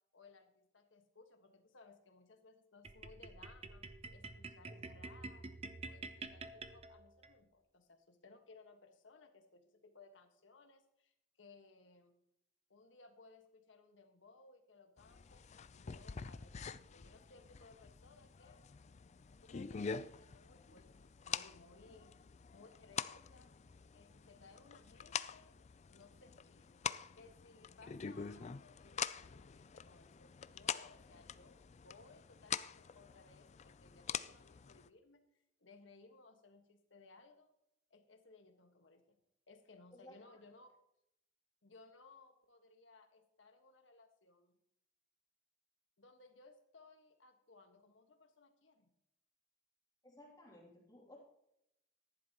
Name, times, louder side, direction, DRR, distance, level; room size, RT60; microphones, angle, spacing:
voice 1, 0.1-5.4 5.9-12.2 12.7-18.6 19.4-22.2 22.5-23.5 23.9-25.5 25.9-26.8 27.1-31.6 31.8-37.5 37.9-39.2 39.5-40.8 41.6-44.5 46.0-48.9, left 3 dB, 85° left, 6 dB, 1.5 m, -62 dB
sound 1, 2.8-7.3, right 3 dB, 35° right, 0.7 m, -49 dB
sound 2, 15.0-34.9, left 7 dB, 35° left, 0.4 m, -46 dB
voice 2, 50.0-51.2, left 1 dB, 20° left, -3 dB, 2.8 m, -58 dB
14.5 x 11.0 x 3.0 m, 0.80 s
head